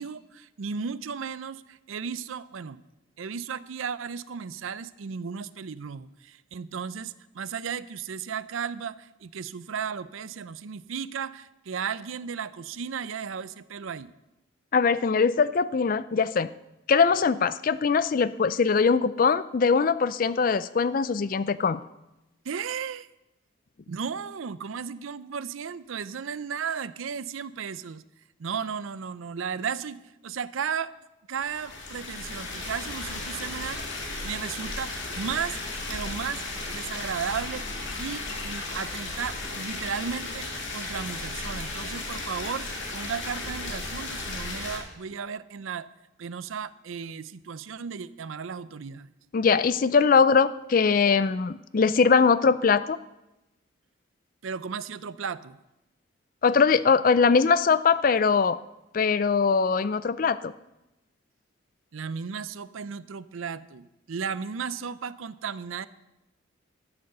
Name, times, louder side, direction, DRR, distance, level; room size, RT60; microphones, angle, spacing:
voice 1, 0.0-2.8 3.2-14.1 22.4-23.1 23.9-28.0 28.4-30.9 31.3-35.6 35.9-36.4 36.7-37.6 38.0-45.9 46.2-49.1 54.4-55.6 61.9-65.9, right 6 dB, 80° right, 16 dB, 0.5 m, -35 dB
voice 2, 14.7-16.5 16.9-21.8 49.3-53.0 56.4-58.6 58.9-60.5, left 5 dB, 40° left, 16 dB, 0.4 m, -22 dB
sound 1, 31.4-44.8, left 2 dB, 65° left, 2.3 m, -35 dB
13.0 x 8.0 x 6.6 m, 0.96 s
head